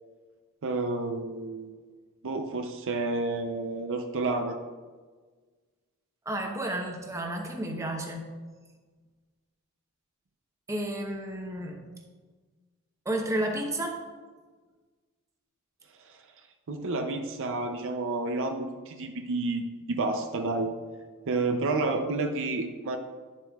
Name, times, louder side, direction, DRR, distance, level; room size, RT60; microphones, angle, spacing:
voice 1, 0.6-1.8 2.2-4.6 16.0-16.2 16.7-20.7 21.3-23.0, right 3 dB, 60° right, 5 dB, 0.6 m, -30 dB
voice 2, 6.2-8.3 10.7-11.8 13.0-14.1, right 1 dB, 15° right, 1 dB, 0.9 m, -32 dB
10.5 x 7.3 x 2.4 m, 1.4 s
head